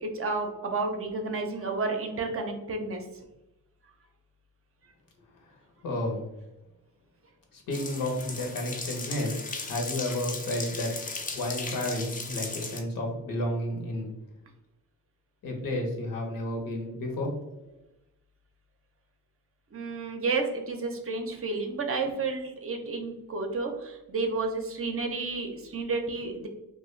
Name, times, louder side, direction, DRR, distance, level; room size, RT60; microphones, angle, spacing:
voice 1, 0.0-3.0 19.7-26.5, right 3 dB, 40° right, 3 dB, 0.5 m, -31 dB
voice 2, 5.8-6.2 7.5-14.1 15.4-17.4, left 1 dB, 70° left, 2 dB, 0.8 m, -32 dB
sound 1, 7.7-12.8, left 3 dB, 25° left, 0.4 m, -37 dB
2.3 x 2.2 x 3.1 m, 0.94 s
cardioid pair, 80°, 35 cm